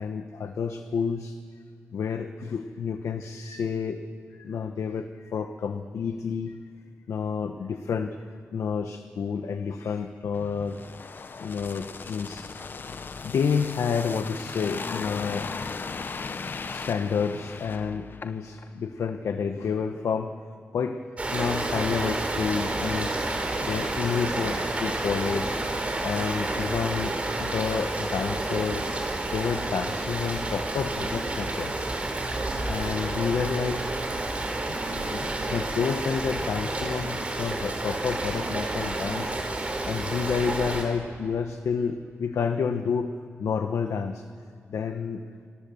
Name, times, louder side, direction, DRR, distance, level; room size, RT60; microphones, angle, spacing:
voice 1, 0.0-1.4 1.9-4.0 4.4-6.5 7.1-8.2 8.5-10.8 11.4-12.5 13.2-15.5 16.2-16.3 16.7-20.3 20.7-21.0 21.3-23.3 23.6-25.6 26.0-28.9 29.3-31.7 32.7-33.8 34.7-34.8 35.1-39.4 39.8-43.1 43.4-44.3 44.7-45.2, left 6 dB, 80° left, 7 dB, 1.1 m, -29 dB
sound 1, 10.3-18.7 19.0-19.2, left 4 dB, 45° left, 0.9 m, -37 dB
Rain, 21.2-40.8, right 2 dB, 30° right, 4.4 m, -30 dB
28.0 x 25.0 x 7.1 m, 2.2 s
wide cardioid pair, 135°, 5 cm